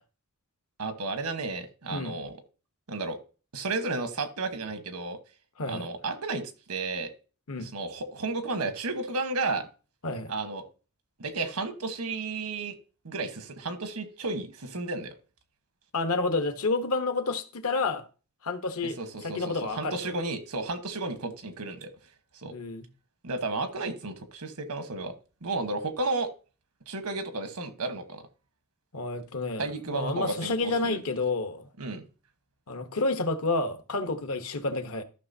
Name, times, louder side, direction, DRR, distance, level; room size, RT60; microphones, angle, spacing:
voice 1, 0.8-2.3 2.9-3.2 3.5-5.2 5.7-7.1 7.6-9.7 10.3-10.6 11.2-12.8 13.0-15.1 18.8-21.9 22.3-22.5 23.2-25.1 25.4-26.3 26.9-28.2 29.6-31.0 31.8-32.0, right 3 dB, 90° right, 1.2 m, -33 dB
voice 2, 15.9-18.0 18.4-19.0 19.2-20.1 22.5-22.9 28.9-31.7 32.7-35.0, left 3 dB, 70° left, 1.0 m, -29 dB
13.5 x 6.0 x 2.7 m
head